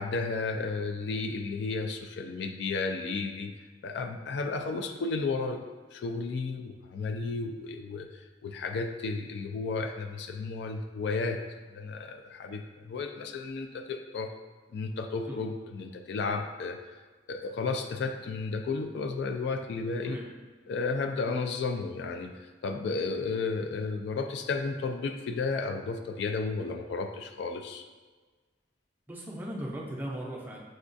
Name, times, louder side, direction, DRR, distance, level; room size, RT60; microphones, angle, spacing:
voice 1, 0.0-3.5 3.8-5.6 5.9-11.4 11.7-14.3 14.7-16.8 17.3-20.2 20.7-27.8, left 4 dB, 65° left, 6 dB, 0.3 m, -33 dB
voice 2, 29.1-30.6, right 1 dB, 10° right, -3 dB, 0.5 m, -37 dB
6.3 x 2.3 x 2.5 m, 1.4 s
head